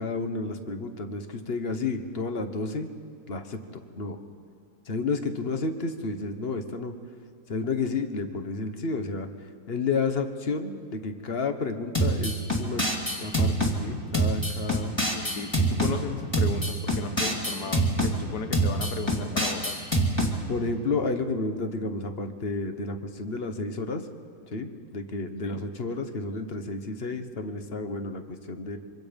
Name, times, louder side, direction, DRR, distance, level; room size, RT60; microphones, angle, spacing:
voice 1, 0.0-2.9 3.3-4.2 4.8-7.0 7.5-9.3 9.7-12.8 13.2-15.0 20.5-24.1 24.5-28.8, left 3 dB, 40° left, 7 dB, 1.3 m, -31 dB
sound 1, 11.9-13.8 14.1-15.9 16.3-18.1 18.5-20.3, right 1 dB, 15° left, 2.4 m, -25 dB
voice 2, 15.1-19.7 25.4-25.6, left 5 dB, 70° left, 7 dB, 1.8 m, -35 dB
25.0 x 25.0 x 5.3 m, 2.3 s
omnidirectional pair, 1.8 m